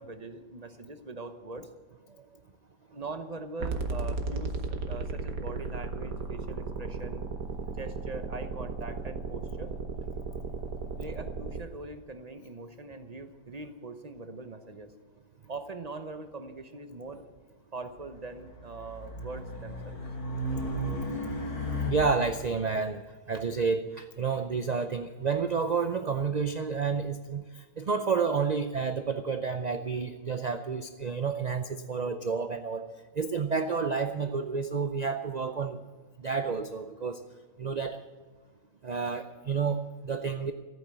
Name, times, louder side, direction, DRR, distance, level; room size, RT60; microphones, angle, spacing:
voice 1, 0.0-1.7 2.9-7.2 7.8-9.7 11.0-14.9 15.5-17.2 17.7-20.0, right 3 dB, 35° right, 8 dB, 0.8 m, -42 dB
sound 1, 3.6-11.6, right 3 dB, 70° right, 1.6 m, -35 dB
Race car auto racing, 18.1-22.5, left 1 dB, 75° left, 3.1 m, -35 dB
voice 2, 20.9-21.3 21.9-32.9 33.2-35.8 36.2-37.2 37.6-38.0 38.8-40.5, right 5 dB, 90° right, 9 dB, 0.3 m, -30 dB
14.5 x 8.7 x 8.8 m, 1.3 s
omnidirectional pair, 1.6 m